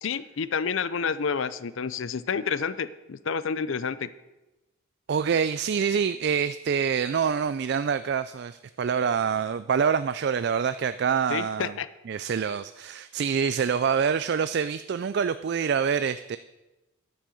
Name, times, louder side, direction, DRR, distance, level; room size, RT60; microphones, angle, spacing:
voice 1, 0.0-4.1 11.3-11.9, left 6 dB, 65° left, 15 dB, 0.5 m, -29 dB
voice 2, 5.1-11.7 12.1-16.4, right 6 dB, 50° right, 13 dB, 0.3 m, -26 dB
10.5 x 8.9 x 6.4 m, 1.0 s
head